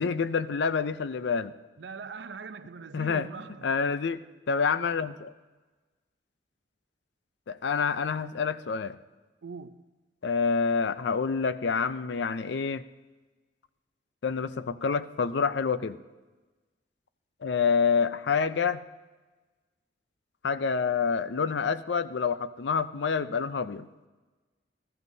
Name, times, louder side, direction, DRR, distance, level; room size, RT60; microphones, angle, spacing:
voice 1, 0.0-1.5 2.9-3.3 3.6-5.3 7.5-9.0 10.2-12.8 14.2-16.0 17.4-18.8 20.4-23.9, left 5 dB, 65° left, 0.5 m, -27 dB
voice 2, 1.8-3.7 9.4-9.8, right 5 dB, 70° right, 0.6 m, -42 dB
19.0 x 14.0 x 2.7 m
head